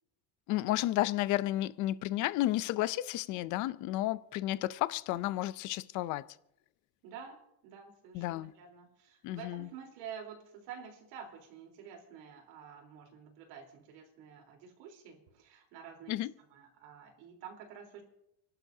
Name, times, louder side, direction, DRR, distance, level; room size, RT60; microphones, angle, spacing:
voice 1, 0.5-6.2 8.1-8.5 9.2-9.7 16.1-16.3, left 15 dB, 40° left, 0.4 m, -32 dB
voice 2, 7.0-16.2 16.5-18.0, right 7 dB, 80° right, 3.7 m, -49 dB
30.0 x 11.5 x 2.7 m
cardioid pair, 170°, 50 cm